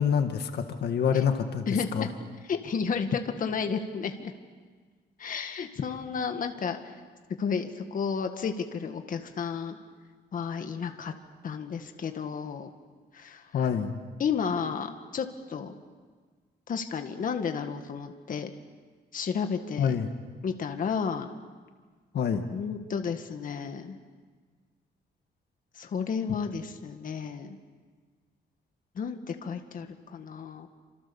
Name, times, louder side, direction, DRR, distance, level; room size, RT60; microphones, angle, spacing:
voice 1, 0.0-1.6 1.9-2.1 13.5-14.0 19.8-20.1 22.1-22.4, left 7 dB, 65° left, 6 dB, 1.7 m, -26 dB
voice 2, 1.7-2.1 2.5-4.3 5.2-6.9 7.4-9.8 10.3-11.1 11.4-12.7 13.1-13.7 14.2-15.7 16.7-18.5 19.1-20.0 20.4-21.3 22.5-24.0 25.8-27.6 29.0-30.7, left 6 dB, 50° left, 6 dB, 1.8 m, -32 dB
28.5 x 26.5 x 7.2 m, 1.5 s
cardioid pair, 150°, 18 cm